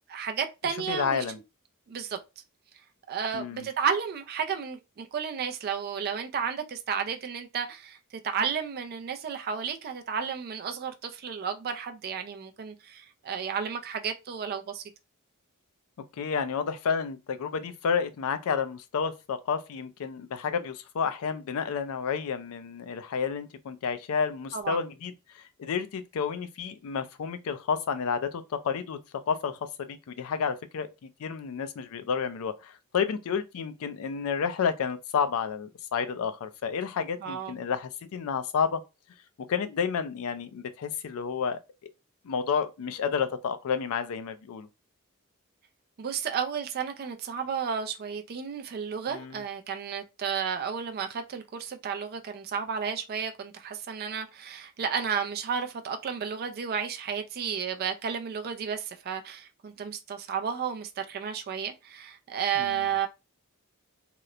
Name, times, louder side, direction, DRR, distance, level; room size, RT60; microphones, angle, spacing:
voice 1, 0.1-1.2 1.9-2.2 3.1-14.8 24.5-24.8 37.2-37.6 46.0-63.1, right 7 dB, 45° right, 0.3 m, -32 dB
voice 2, 0.9-1.4 3.3-3.7 16.2-29.0 29.3-38.8 39.5-41.6 42.2-44.7 49.1-49.4 62.6-62.9, left 6 dB, 65° left, 0.4 m, -30 dB
2.9 x 2.0 x 2.3 m
head